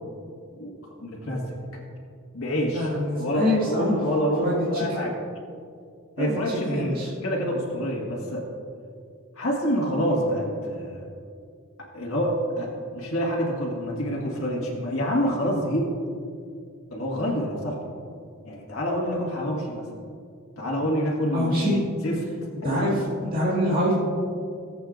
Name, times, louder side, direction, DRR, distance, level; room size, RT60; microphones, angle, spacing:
voice 1, 0.5-1.6 2.3-2.9 3.2-5.1 6.2-8.4 9.3-11.0 11.8-15.9 16.9-17.8 18.4-19.9 20.6-22.2 22.6-23.0, equal, 75° left, -3 dB, 1.8 m, -27 dB
voice 2, 2.7-4.0 4.4-4.8 6.2-7.1 21.3-21.8 22.6-23.0 23.3-23.9, left 1 dB, 40° right, -8 dB, 2.3 m, -25 dB
18.5 x 7.9 x 2.6 m, 2.4 s
head